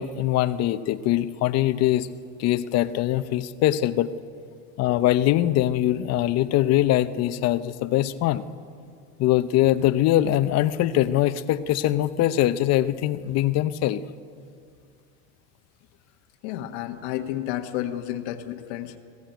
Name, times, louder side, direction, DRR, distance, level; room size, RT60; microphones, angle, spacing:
voice 1, 0.0-2.1 2.4-4.1 4.8-8.4 9.2-14.0, left 13 dB, 50° left, 12 dB, 0.9 m, -22 dB
voice 2, 16.4-19.0, left 12 dB, 80° left, 5 dB, 1.4 m, -31 dB
20.5 x 15.0 x 9.2 m, 2.2 s
supercardioid pair, 125°, 32 cm